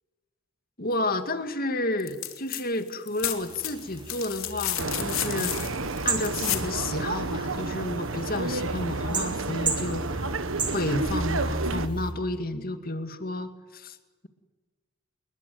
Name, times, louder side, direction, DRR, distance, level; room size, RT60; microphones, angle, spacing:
voice 1, 0.8-5.8 6.0-10.4 10.7-14.0, left 2 dB, 45° left, 8 dB, 2.2 m, -31 dB
sound 1, 2.0-2.6 2.9-6.7 8.4-8.5, left 12 dB, 75° left, 2.9 m, -32 dB
sound 2, 3.2-12.1, right 3 dB, 20° right, 3.8 m, -35 dB
sound 3, 4.8-11.9, right 3 dB, 65° right, 1.4 m, -31 dB
28.5 x 21.5 x 9.5 m, 1.3 s
head